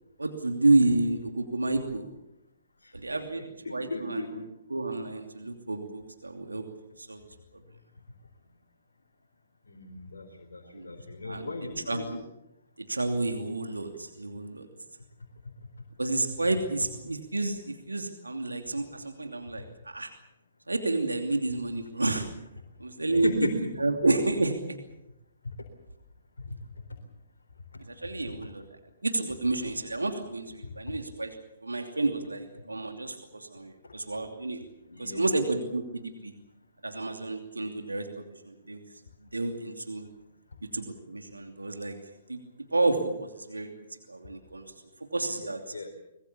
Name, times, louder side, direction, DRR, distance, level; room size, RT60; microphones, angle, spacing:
voice 1, 0.2-2.0 2.9-4.4 4.7-6.6 7.0-7.2 7.5-7.6 10.7-10.9 11.2-11.5 11.9-12.2 12.8-14.7 16.0-20.1 20.7-22.3 22.8-23.5 23.8-24.8 27.9-28.6 29.0-31.4 31.6-34.6 35.0-36.3 36.8-38.8 39.3-40.0 40.7-42.0 42.3-42.4 42.7-44.6 45.1-45.7, right 2 dB, 90° right, 5 dB, 2.8 m, -30 dB
voice 2, 3.6-4.4 9.7-12.1 23.2-23.8 32.6-32.8 34.9-35.3 39.5-39.6 45.4-45.9, left 2 dB, 75° left, 1 dB, 3.9 m, -36 dB
25.0 x 21.5 x 7.2 m, 0.90 s
figure-of-eight pair, 125°, 0 cm